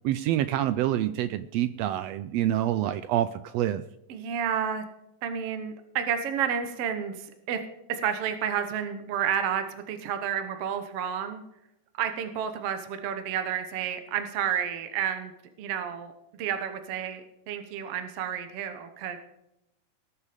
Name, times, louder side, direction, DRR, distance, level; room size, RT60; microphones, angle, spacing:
voice 1, 0.0-3.8, right 12 dB, 90° right, 13 dB, 1.4 m, -27 dB
voice 2, 4.1-4.8 5.2-7.6 7.9-11.4 12.0-15.3 15.6-16.1 16.4-17.2 17.5-19.2, right 8 dB, 60° right, 8 dB, 1.9 m, -30 dB
19.5 x 7.3 x 5.1 m, 0.86 s
omnidirectional pair, 3.5 m